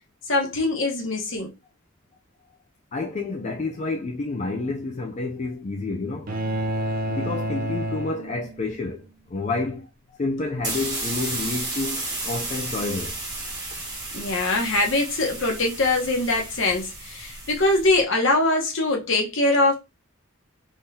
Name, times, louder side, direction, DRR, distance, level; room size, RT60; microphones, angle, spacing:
voice 1, 0.3-1.5 14.1-19.8, left 2 dB, 60° left, 1.1 m, -22 dB
voice 2, 2.9-6.3 7.1-13.2, left 3 dB, 30° left, 0.3 m, -29 dB
sound 1, 6.3-8.8, right 1 dB, 40° right, 0.5 m, -29 dB
sound 2, 10.6-18.0, right 2 dB, 15° right, 1.4 m, -33 dB
3.7 x 3.0 x 2.7 m
head